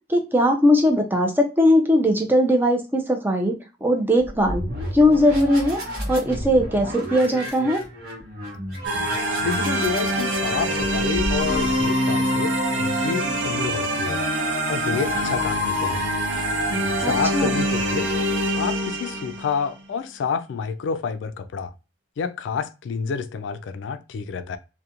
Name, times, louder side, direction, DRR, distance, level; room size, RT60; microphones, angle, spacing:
voice 1, 0.1-3.5 3.8-4.6 4.9-5.8 6.1-7.8 17.0-17.6, left 1 dB, 10° right, 0.5 m, -19 dB
sound 1, 4.2-11.8, equal, 55° right, 1.0 m, -32 dB
sound 2, 8.8-19.6, equal, 80° right, 0.6 m, -24 dB
voice 2, 9.4-14.2 14.7-16.0 17.0-18.1 18.6-21.7 22.2-24.6, left 6 dB, 80° left, 0.3 m, -28 dB
2.4 x 2.2 x 2.7 m
head